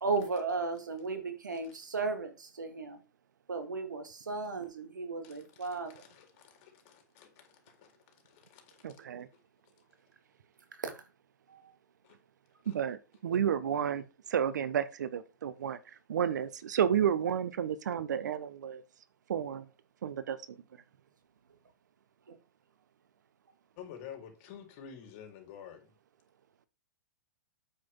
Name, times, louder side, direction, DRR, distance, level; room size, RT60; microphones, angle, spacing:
voice 1, 0.0-3.0 3.5-5.9 10.8-11.0 11.5-11.6 22.3-22.4, right 4 dB, 90° right, 2.2 m, -35 dB
voice 2, 5.2-7.5 7.8-7.9 8.3-8.8 12.0-12.1 12.6-12.7 23.8-25.9, left 8 dB, 45° left, 3.8 m, -50 dB
voice 3, 8.8-9.3 12.7-14.0 14.3-15.8 16.1-18.8 19.3-19.6 20.0-20.6, right 8 dB, 75° right, 1.1 m, -31 dB
8.5 x 7.9 x 3.7 m
hypercardioid pair, 120°, 10 cm